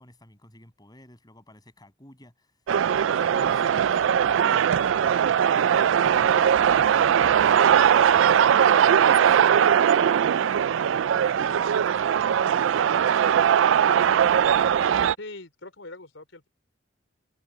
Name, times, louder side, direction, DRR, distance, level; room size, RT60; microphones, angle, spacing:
voice 1, 0.0-2.6 3.2-5.2 5.5-8.5 9.1-10.7 11.1-13.5, left 1 dB, 20° left, 7.7 m, -50 dB
sound 1, 2.7-15.2, right 8 dB, 80° right, 0.3 m, -20 dB
voice 2, 15.2-16.5, left 2 dB, 85° left, 4.4 m, -42 dB
head